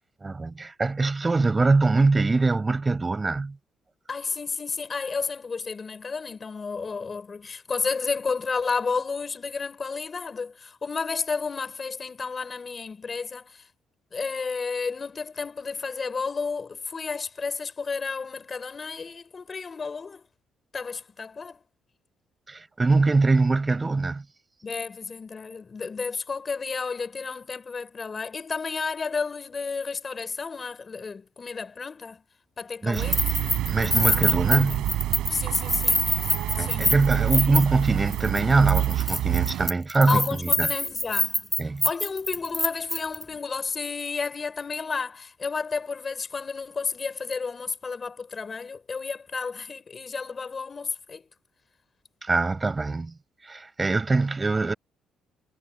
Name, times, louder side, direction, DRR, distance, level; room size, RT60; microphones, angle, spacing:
voice 1, 0.2-3.5 22.5-24.2 32.8-33.1 33.7-34.9 36.6-40.7 41.6-41.9 52.2-53.1 53.4-54.7, right 3 dB, 20° right, 6.5 m, -23 dB
voice 2, 4.1-13.6 14.1-20.2 20.7-21.6 24.6-32.2 32.6-33.2 34.0-34.8 35.3-36.1 36.6-36.9 40.1-41.4 41.8-51.2, left 5 dB, 30° left, 3.5 m, -32 dB
Keys jangling, 32.9-37.9 38.1-38.4 38.7-43.2, left 1 dB, 5° left, 7.3 m, -25 dB
sound 1, 33.0-39.7, right 14 dB, 80° right, 6.0 m, -27 dB
cardioid pair, 125°, 0 cm